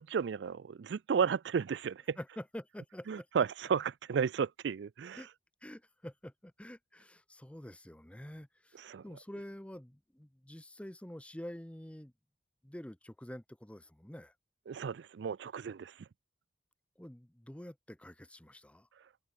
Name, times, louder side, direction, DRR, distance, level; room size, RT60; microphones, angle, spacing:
voice 1, 0.1-2.2 3.1-5.3 8.8-9.0 14.7-15.9, right 6 dB, 75° right, 0.4 m, -33 dB
voice 2, 2.2-3.3 5.2-5.3 5.6-12.1 12.6-14.3 17.0-18.9, equal, 5° left, 0.7 m, -47 dB
head